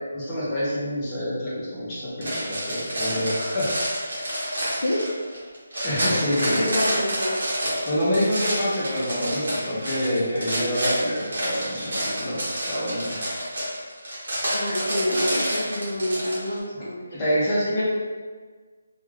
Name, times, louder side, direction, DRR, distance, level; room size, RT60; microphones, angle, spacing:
voice 1, 0.1-4.1 5.8-6.6 7.9-13.2 17.1-17.8, equal, 10° left, -10 dB, 0.5 m, -27 dB
sound 1, 2.2-16.6, equal, 40° right, 0.8 m, -28 dB
voice 2, 6.5-7.5 14.5-17.0 17.8-17.9, left 1 dB, 80° left, -3 dB, 0.5 m, -27 dB
2.2 x 2.2 x 3.2 m, 1.5 s
hypercardioid pair, 180°, 0 cm